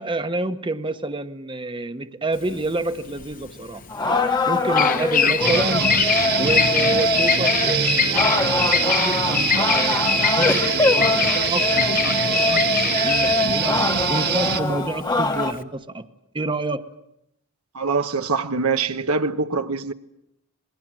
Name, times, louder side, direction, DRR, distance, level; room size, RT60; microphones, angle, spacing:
voice 1, 0.0-3.8 4.5-5.9 6.4-10.0 10.4-12.6 12.9-13.7 14.1-16.1 16.3-16.8, right 2 dB, 25° right, 1.1 m, -28 dB
Bird vocalization bird call bird song, 2.4-15.6, left 7 dB, 40° left, 1.1 m, -24 dB
sound 1, 3.9-15.5, left 3 dB, 20° left, 1.3 m, -23 dB
voice 2, 4.7-5.3 17.7-19.9, right 4 dB, 90° right, 1.2 m, -24 dB
sound 2, 5.4-14.6, right 7 dB, 45° right, 1.5 m, -24 dB
27.5 x 21.5 x 7.6 m
head